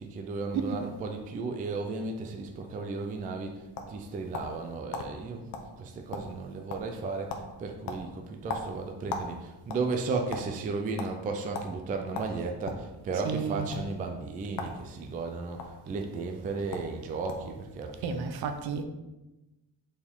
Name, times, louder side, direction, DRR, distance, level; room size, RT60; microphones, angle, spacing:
voice 1, 0.0-5.5 5.8-18.2, right 3 dB, 20° right, 0.3 m, -34 dB
sound 1, 3.2-4.6 4.9-5.1 5.5-5.7 6.0-6.4 6.7-7.0 7.3-7.5 7.9-9.3 9.6-10.5 11.0-11.1 11.5-11.7 12.1-12.9 13.6-13.8 14.5-14.8 15.1-15.7 16.4-16.5 16.7-16.9 17.3-17.5, left 4 dB, 50° left, 0.9 m, -37 dB
voice 2, 13.2-13.7 18.0-18.8, right 6 dB, 60° right, 0.7 m, -32 dB
7.1 x 4.4 x 3.6 m
cardioid pair, 170°, 43 cm